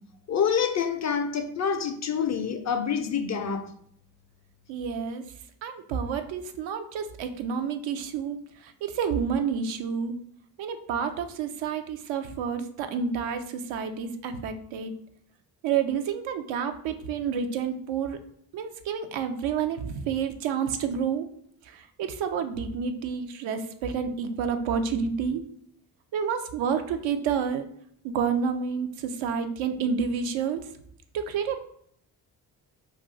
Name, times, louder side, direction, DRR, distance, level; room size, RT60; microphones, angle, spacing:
voice 1, 0.3-3.7, left 7 dB, 35° left, 0.4 m, -27 dB
voice 2, 4.7-5.2 5.6-8.4 8.6-10.1 10.6-14.9 15.6-18.2 18.5-21.3 21.7-25.4 26.1-27.6 28.0-30.6 31.1-31.6, right 6 dB, 75° right, 0.5 m, -29 dB
2.4 x 2.3 x 3.8 m
hypercardioid pair, 45°, 47 cm